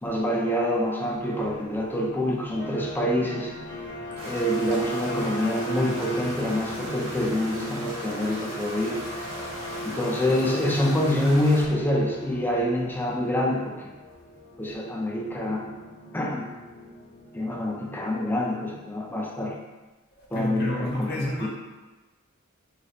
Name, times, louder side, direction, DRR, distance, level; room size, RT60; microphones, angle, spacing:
voice 1, 0.0-3.5 4.2-9.0 9.8-13.9 14.6-15.7 16.1-16.5 17.3-19.5 20.3-21.5, left 1 dB, 10° left, -1 dB, 0.4 m, -26 dB
sound 1, 2.6-18.9, equal, 75° left, 1.5 m, -38 dB
sound 2, 4.2-11.6, right 1 dB, 85° right, 0.9 m, -38 dB
voice 2, 20.2-21.5, left 1 dB, 50° left, -3 dB, 0.7 m, -30 dB
3.3 x 2.0 x 3.9 m, 1.2 s
head